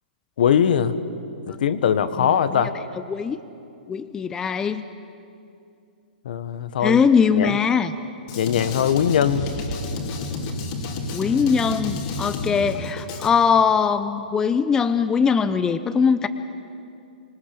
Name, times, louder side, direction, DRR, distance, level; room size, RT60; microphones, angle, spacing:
voice 1, 0.4-1.0 1.5-2.7 6.2-7.0 7.4-7.6 8.4-9.5, left 8 dB, 60° left, 12 dB, 1.3 m, -21 dB
voice 2, 3.9-4.8 6.8-7.9 11.1-16.3, left 6 dB, 10° left, 11 dB, 0.5 m, -21 dB
Drum kit, 8.3-13.3, left 2 dB, 40° left, 2.7 m, -30 dB
25.5 x 20.0 x 6.9 m, 2.6 s
hypercardioid pair, 150°, 5 cm